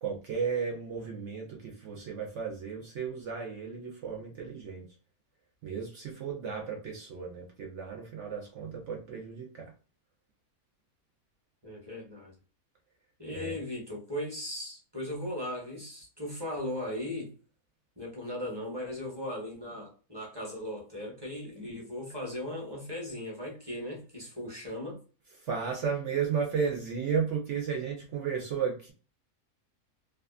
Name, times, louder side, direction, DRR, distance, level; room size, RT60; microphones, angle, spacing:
voice 1, 0.0-4.8 5.6-9.7 13.3-13.6 25.4-28.9, right 6 dB, 65° right, 0.8 m, -34 dB
voice 2, 11.6-12.3 13.2-17.3 18.0-25.0, left 1 dB, 20° right, 0.9 m, -38 dB
2.7 x 2.3 x 2.3 m
omnidirectional pair, 1.6 m